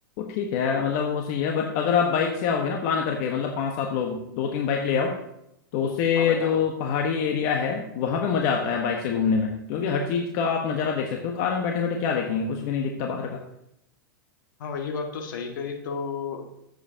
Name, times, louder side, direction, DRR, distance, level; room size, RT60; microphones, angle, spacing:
voice 1, 0.2-5.2 5.7-13.4, left 6 dB, 55° left, 2 dB, 1.4 m, -25 dB
voice 2, 6.1-6.6 14.6-16.4, left 5 dB, 70° left, 2 dB, 1.9 m, -32 dB
15.0 x 8.0 x 2.9 m, 0.79 s
hypercardioid pair, 105°, 11 cm